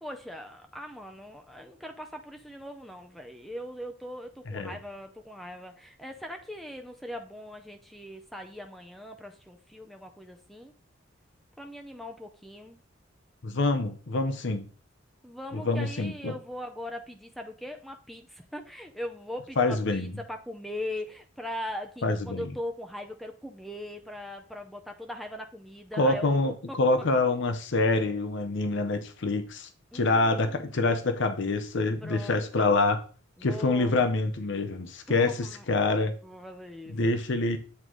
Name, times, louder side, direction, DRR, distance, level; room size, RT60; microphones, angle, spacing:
voice 1, 0.0-10.7 11.6-12.8 15.2-26.8 29.9-30.8 32.0-32.7 33.4-34.0 35.1-35.7 36.2-37.1, left 1 dB, ahead, 0.5 m, -40 dB
voice 2, 13.4-14.6 15.5-16.4 19.6-20.1 22.0-22.4 26.0-33.0 33.4-35.3 35.7-36.1 36.9-37.6, left 3 dB, 65° left, 0.7 m, -26 dB
8.2 x 3.8 x 3.0 m
head